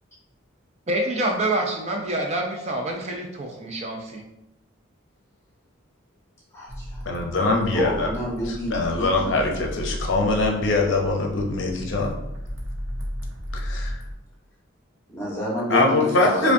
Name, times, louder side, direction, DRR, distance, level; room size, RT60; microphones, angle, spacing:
voice 1, 0.9-4.2, right 1 dB, 30° right, 1 dB, 0.4 m, -26 dB
voice 2, 6.5-7.1 7.3-9.5 15.1-16.5, equal, 15° left, -5 dB, 1.1 m, -29 dB
sound 1, 6.7-14.1, equal, 80° right, 0.9 m, -34 dB
voice 3, 7.1-8.1 8.5-12.1 13.6-14.0 15.7-16.5, left 2 dB, 65° left, 0 dB, 0.6 m, -23 dB
5.0 x 2.2 x 2.6 m, 0.89 s
head